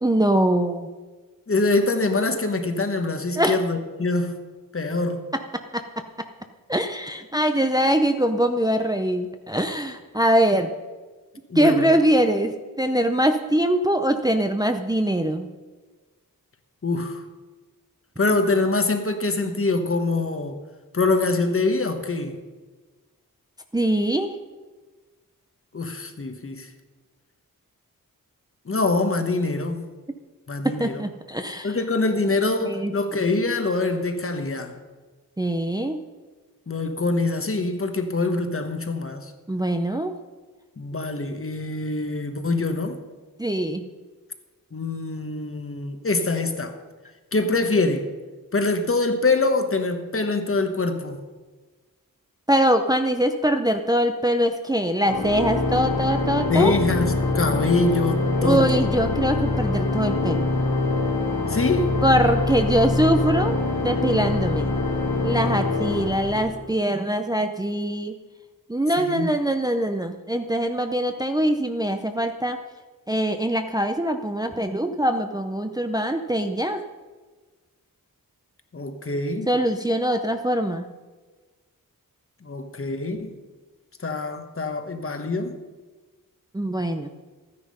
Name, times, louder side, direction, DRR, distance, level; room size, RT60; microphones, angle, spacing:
voice 1, 0.0-0.9 3.4-3.6 5.7-5.8 6.7-10.7 11.5-15.5 23.7-24.4 30.6-31.8 32.7-32.9 35.4-36.0 39.5-40.2 43.4-43.8 52.5-56.7 58.4-60.5 62.0-63.6 63.8-64.7 65.2-68.2 68.7-72.6 73.1-76.8 79.5-80.8 86.5-87.1, right 1 dB, 10° right, 0.6 m, -23 dB
voice 2, 1.5-4.4 4.7-5.2 11.5-11.9 16.8-17.2 18.2-20.6 20.9-22.4 25.7-26.7 28.6-29.9 30.5-31.0 31.6-34.8 36.7-39.3 40.8-43.0 44.7-46.8 47.3-48.1 48.5-51.2 56.5-58.8 61.5-61.9 69.0-69.3 78.7-79.5 82.4-83.3 84.0-85.6, left 3 dB, 40° left, 1.2 m, -24 dB
Organ, 55.0-66.8, left 3 dB, 90° left, 2.2 m, -24 dB
13.5 x 9.7 x 5.4 m
wide cardioid pair, 105°, 34 cm